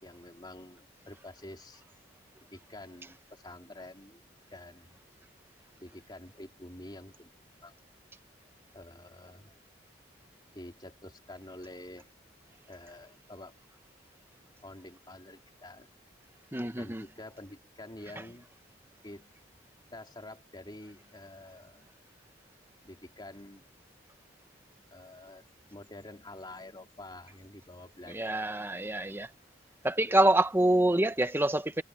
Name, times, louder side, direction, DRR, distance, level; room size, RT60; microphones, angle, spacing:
voice 1, 0.0-1.8 2.5-4.2 4.5-5.0 5.8-7.3 7.6-7.7 8.7-9.5 10.5-12.1 12.7-13.6 14.6-15.9 16.8-18.5 19.0-19.3 19.9-21.9 22.8-23.7 24.9-28.5, left 1 dB, 25° left, 3.3 m, -48 dB
voice 2, 16.5-17.0 28.1-29.3 29.8-31.8, right 1 dB, 15° right, 1.1 m, -26 dB
head